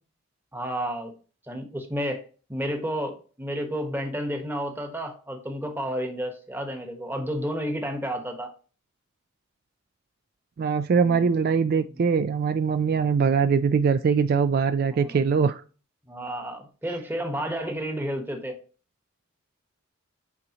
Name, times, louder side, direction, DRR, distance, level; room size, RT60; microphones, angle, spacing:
voice 1, 0.5-1.2 1.5-2.2 2.5-8.5 11.0-11.3 14.9-15.2 16.1-18.6, equal, 10° right, 1.1 m, -31 dB
voice 2, 10.6-15.6, right 5 dB, 50° right, 0.3 m, -22 dB
8.4 x 4.0 x 2.9 m
head